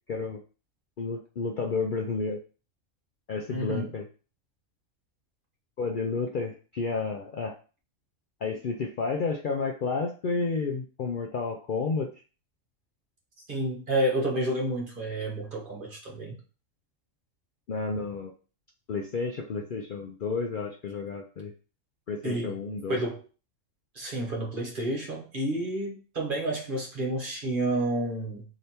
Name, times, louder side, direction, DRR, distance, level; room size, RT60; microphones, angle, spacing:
voice 1, 0.1-0.4 1.0-2.4 3.3-4.1 5.8-7.5 8.4-12.1 17.7-18.3 18.9-21.5 22.1-23.0, left 4 dB, 55° left, 1 dB, 0.6 m, -31 dB
voice 2, 3.5-3.9 13.5-16.4 22.2-22.5 22.9-23.2 23.9-28.4, right 1 dB, 45° right, -1 dB, 1.2 m, -30 dB
3.3 x 2.9 x 4.2 m, 0.36 s
omnidirectional pair, 1.3 m